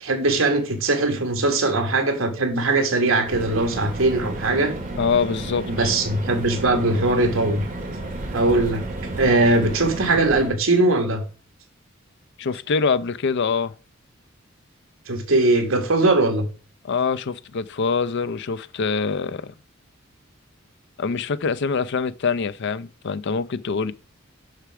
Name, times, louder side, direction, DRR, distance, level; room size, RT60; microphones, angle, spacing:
voice 1, 0.0-4.7 5.7-7.6 8.3-8.8 9.2-11.2 15.1-16.5, right 2 dB, 80° right, 1.7 m, -20 dB
sound 1, 3.3-10.5, right 1 dB, 45° right, 1.9 m, -32 dB
voice 2, 5.0-5.9 12.4-13.7 16.8-19.5 21.0-23.9, left 5 dB, 60° left, 0.5 m, -24 dB
6.6 x 6.0 x 4.8 m
head